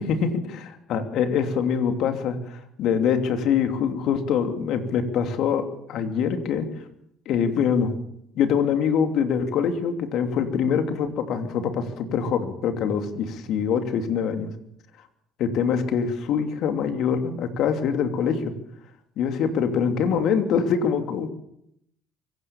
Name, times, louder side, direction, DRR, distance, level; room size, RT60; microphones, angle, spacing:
voice 1, 0.0-6.7 7.3-7.9 8.3-14.5 15.4-18.5 19.2-21.3, left 7 dB, 65° left, 7 dB, 3.0 m, -24 dB
24.0 x 17.0 x 7.3 m, 0.74 s
hypercardioid pair, 60°, 0 cm